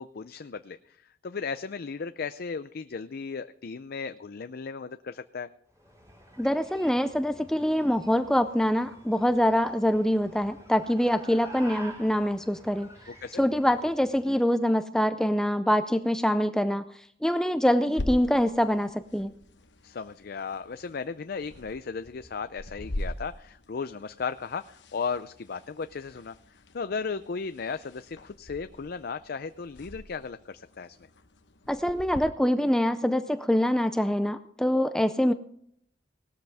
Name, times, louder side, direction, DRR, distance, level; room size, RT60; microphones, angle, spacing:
voice 1, 0.0-5.5 13.1-13.4 19.8-31.1, left 5 dB, 55° left, 11 dB, 0.5 m, -36 dB
sound 1, 5.7-14.3, right 1 dB, 20° right, 4.4 m, -49 dB
voice 2, 6.4-12.9 13.4-16.8 17.2-19.3 31.7-35.3, equal, 5° left, 10 dB, 0.5 m, -25 dB
sound 2, 18.0-32.2, left 1 dB, 75° left, 1.0 m, -42 dB
18.5 x 13.0 x 3.5 m, 0.66 s
head